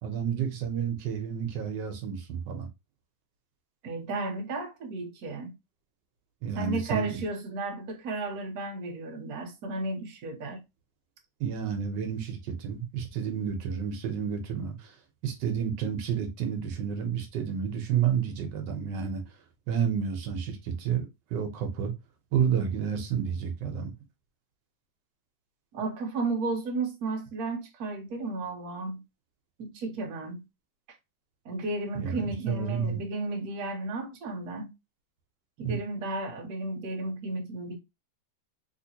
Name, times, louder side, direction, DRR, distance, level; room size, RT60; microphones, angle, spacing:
voice 1, 0.0-2.7 6.4-7.2 11.4-14.9 15.2-19.2 19.7-21.9 22.3-23.9 32.0-33.0 35.6-35.8, right 7 dB, 85° right, 1.5 m, -30 dB
voice 2, 3.8-5.5 6.5-10.6 25.7-29.0 29.6-30.4 31.4-34.7 35.6-37.8, right 3 dB, 60° right, 1.3 m, -33 dB
3.6 x 2.9 x 2.8 m
omnidirectional pair, 1.9 m